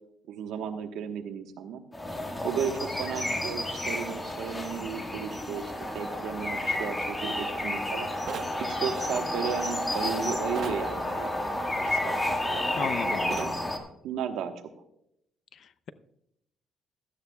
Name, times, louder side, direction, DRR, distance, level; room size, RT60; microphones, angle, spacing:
voice 1, 0.3-1.8 2.4-8.1 8.6-11.3 11.7-13.5 14.0-14.6, right 7 dB, 90° right, 6 dB, 1.2 m, -34 dB
sound 1, 1.9-13.8, left 1 dB, 15° left, 1.7 m, -31 dB
sound 2, 8.3-8.6 10.6-10.8 13.3-13.6, right 7 dB, 65° right, 0.9 m, -36 dB
voice 2, 12.8-13.2 15.5-15.9, left 7 dB, 60° left, 15 dB, 0.6 m, -34 dB
16.5 x 12.5 x 2.3 m, 0.78 s
cardioid pair, 90°, 0 cm